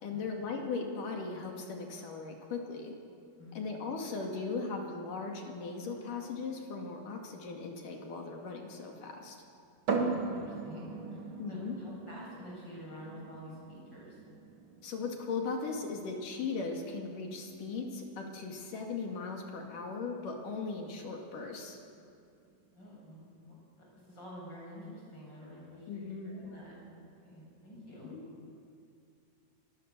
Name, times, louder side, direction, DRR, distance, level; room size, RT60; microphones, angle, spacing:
voice 1, 0.0-2.9 3.6-9.4 11.4-11.8 14.8-21.8 25.9-26.4 28.0-28.5, left 4 dB, 55° left, 1 dB, 3.5 m, -38 dB
voice 2, 3.4-3.7 10.0-14.2 22.7-23.2 23.5-28.1, equal, 25° left, -4 dB, 8.0 m, -49 dB
sound 1, 9.9-23.4, right 4 dB, 45° right, 1.9 m, -41 dB
25.5 x 20.5 x 6.8 m, 2.4 s
omnidirectional pair, 4.8 m